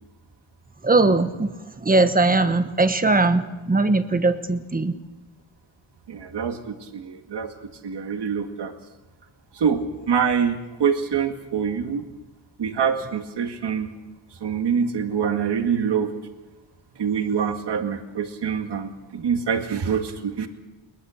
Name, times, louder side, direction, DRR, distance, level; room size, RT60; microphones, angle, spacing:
voice 1, 0.8-1.5 1.8-4.9, right 3 dB, 20° right, 10 dB, 1.2 m, -20 dB
voice 2, 6.1-8.7 9.6-12.1 12.6-13.9 14.4-16.1 17.0-20.5, right 7 dB, 60° right, 6 dB, 2.0 m, -25 dB
22.0 x 21.5 x 6.5 m, 1.1 s
wide cardioid pair, 155°, 47 cm